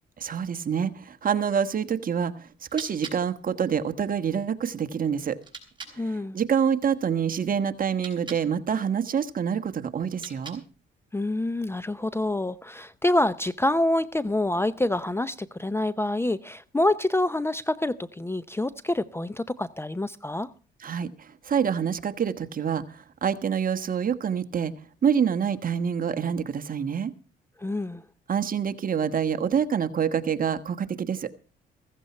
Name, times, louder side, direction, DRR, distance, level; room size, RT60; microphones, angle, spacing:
voice 1, 0.2-5.4 5.9-10.6 20.8-24.7 25.0-27.1 28.3-31.3, right 7 dB, 45° right, 9 dB, 1.4 m, -27 dB
sound 1, 2.4-6.0 7.8-8.5 10.0-10.9, right 4 dB, 25° right, 4.4 m, -45 dB
voice 2, 6.0-6.4 11.1-20.5 27.6-28.0, left 1 dB, 10° left, 16 dB, 0.6 m, -26 dB
15.5 x 14.5 x 4.3 m, 0.37 s
cardioid pair, 90°, 20 cm